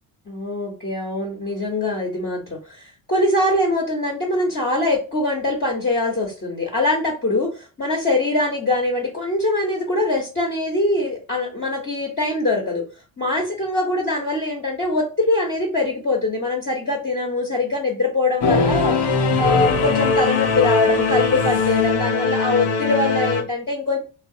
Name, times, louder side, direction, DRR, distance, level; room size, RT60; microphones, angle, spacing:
voice 1, 0.3-12.8 13.2-19.0 19.4-24.0, left 2 dB, 25° left, -2 dB, 1.0 m, -23 dB
Singing / Musical instrument, 18.4-23.4, left 4 dB, 60° left, 0.7 m, -20 dB
3.0 x 2.1 x 2.7 m, 0.34 s
supercardioid pair, 65°, 47 cm